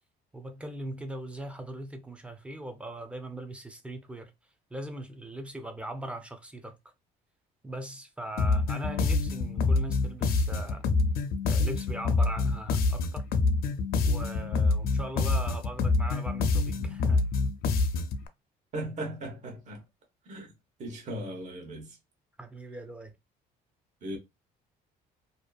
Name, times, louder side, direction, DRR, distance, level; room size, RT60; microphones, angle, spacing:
voice 1, 0.3-4.3 4.7-6.7 7.6-10.8 11.5-13.3 14.0-17.3 22.4-23.1, right 1 dB, 5° right, 0.5 m, -40 dB
sound 1, 8.4-18.2, left 3 dB, 65° left, 0.4 m, -26 dB
voice 2, 18.7-19.8 20.3-20.5 20.8-22.0 24.0-24.2, right 1 dB, 45° right, 0.9 m, -37 dB
2.6 x 2.4 x 2.3 m
cardioid pair, 110°, 17 cm